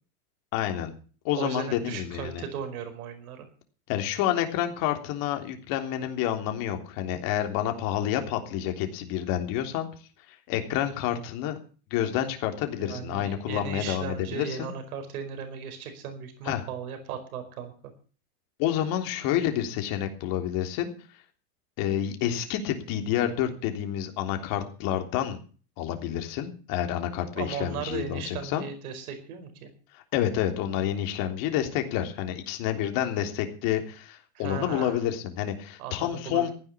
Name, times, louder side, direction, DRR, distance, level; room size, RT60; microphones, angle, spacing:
voice 1, 0.5-0.9 1.2-2.4 3.9-9.9 10.5-11.6 11.9-14.7 16.4-16.7 18.6-20.9 21.8-25.4 25.8-28.6 29.9-36.5, left 11 dB, 50° left, 5 dB, 3.5 m, -29 dB
voice 2, 1.3-3.5 12.8-17.7 27.3-29.7 34.3-35.0 35.8-36.5, right 7 dB, 75° right, 6 dB, 4.9 m, -36 dB
15.0 x 10.0 x 7.3 m, 0.40 s
supercardioid pair, 135°, 44 cm